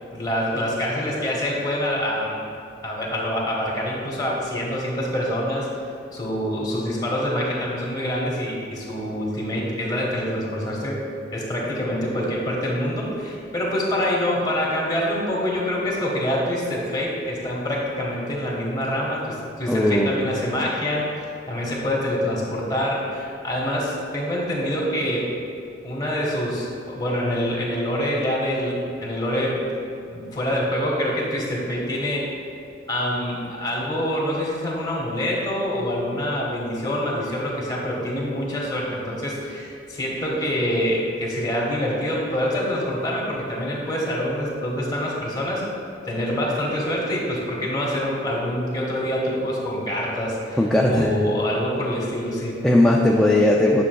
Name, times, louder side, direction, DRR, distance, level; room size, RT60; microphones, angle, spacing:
voice 1, 0.1-2.4 2.8-5.7 6.1-11.0 11.3-25.3 25.8-29.6 30.1-32.3 32.9-45.6 46.0-50.6 50.9-52.6, equal, 20° left, -3 dB, 1.4 m, -26 dB
voice 2, 19.7-20.2 50.6-51.2 52.6-53.8, left 1 dB, 5° left, -3 dB, 0.3 m, -18 dB
9.9 x 6.4 x 2.3 m, 2.5 s
head